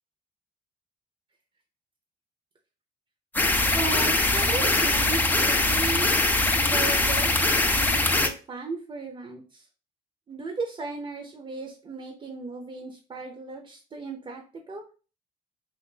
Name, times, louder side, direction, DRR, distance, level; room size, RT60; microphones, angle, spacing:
sound 1, 3.3-8.3, left 2 dB, 10° left, 0.4 m, -22 dB
voice 1, 3.7-6.1 6.6-9.7 10.3-14.8, right 4 dB, 30° right, 2 dB, 0.6 m, -36 dB
2.8 x 2.5 x 3.7 m, 0.35 s
cardioid pair, 110°, 17 cm